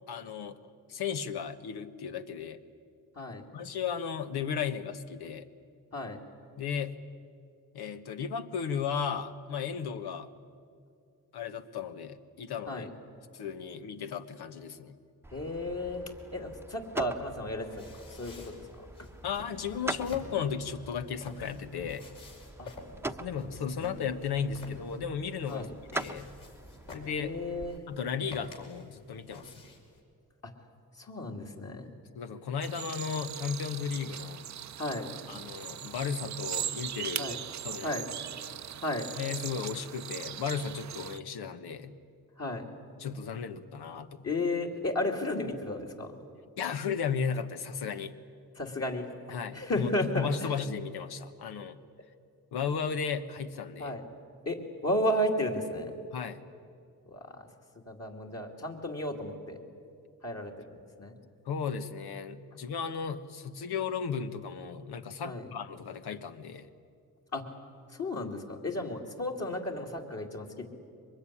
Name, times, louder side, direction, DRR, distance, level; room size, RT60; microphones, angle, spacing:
voice 1, 0.1-0.6 0.9-2.6 3.5-5.5 6.6-7.0 7.7-10.3 11.3-12.9 13.3-15.0 19.2-22.0 23.2-25.7 25.9-26.3 26.9-27.4 27.9-29.5 32.1-34.4 35.3-37.3 37.6-38.0 39.2-42.0 43.0-44.3 46.6-48.1 49.3-51.8 52.5-54.0 56.1-56.5 61.5-66.7, left 6 dB, 85° left, 10 dB, 1.3 m, -35 dB
sound 1, 15.2-27.8, right 2 dB, 5° right, 0.9 m, -43 dB
voice 2, 15.3-16.0 16.3-17.7 18.1-18.5 22.6-22.7 23.2-23.4 25.5-25.7 27.2-27.8 31.0-31.9 34.8-35.1 37.2-37.4 37.8-38.0 38.8-39.1 42.4-42.6 44.2-46.2 48.6-49.1 49.5-50.5 53.8-54.0 54.5-55.9 57.1-57.5 57.9-59.6 60.2-61.1 65.2-65.5 67.3-67.4 67.9-70.7, left 1 dB, 40° left, 1 dB, 2.9 m, -33 dB
sound 2, 17.6-30.0, left 2 dB, 60° left, 5.5 m, -51 dB
sound 3, 32.6-41.2, right 10 dB, 50° right, 0.6 m, -39 dB
23.5 x 21.0 x 10.0 m, 2.4 s
cardioid pair, 85°, 37 cm